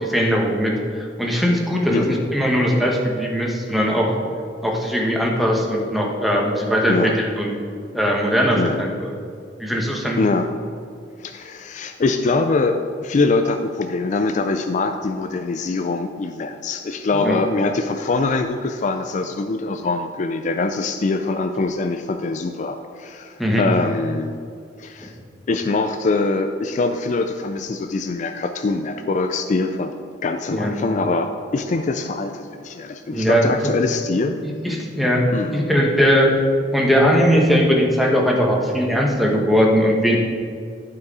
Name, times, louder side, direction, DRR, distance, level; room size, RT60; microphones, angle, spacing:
voice 1, 0.0-4.1 4.6-7.5 7.9-8.9 9.6-10.2 17.2-17.3 23.4-23.6 25.0-25.1 30.5-30.7 33.1-33.5 34.4-35.3 35.5-36.3 36.7-40.2, equal, ahead, -1 dB, 1.2 m, -19 dB
voice 2, 10.2-10.5 11.2-24.3 24.8-25.1 25.5-34.4 35.3-35.6, left 3 dB, 40° left, 7 dB, 0.4 m, -23 dB
11.5 x 4.7 x 4.8 m, 2.2 s
head